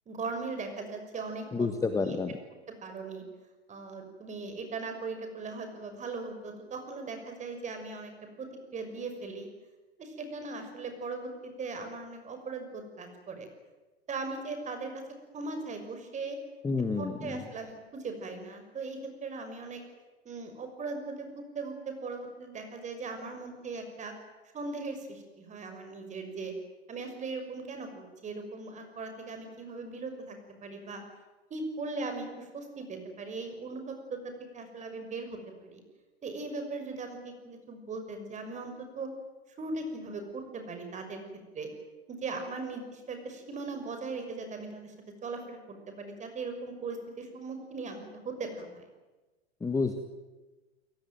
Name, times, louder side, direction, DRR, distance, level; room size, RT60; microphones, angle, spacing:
voice 1, 0.1-1.7 2.0-2.2 2.7-3.2 3.7-8.1 8.4-9.5 10.0-13.5 14.1-16.4 17.0-19.8 20.2-24.1 24.5-26.5 26.9-30.4 30.6-31.0 31.5-35.8 36.2-39.1 39.6-41.2 41.5-41.7 42.1-44.9 45.2-45.6 45.9-48.9, right 3 dB, 20° right, 6 dB, 6.0 m, -39 dB
voice 2, 1.5-2.3 16.6-17.4 49.6-50.0, left 4 dB, 10° left, 7 dB, 1.6 m, -29 dB
29.0 x 18.0 x 9.2 m, 1.2 s
figure-of-eight pair, 100°, 33 cm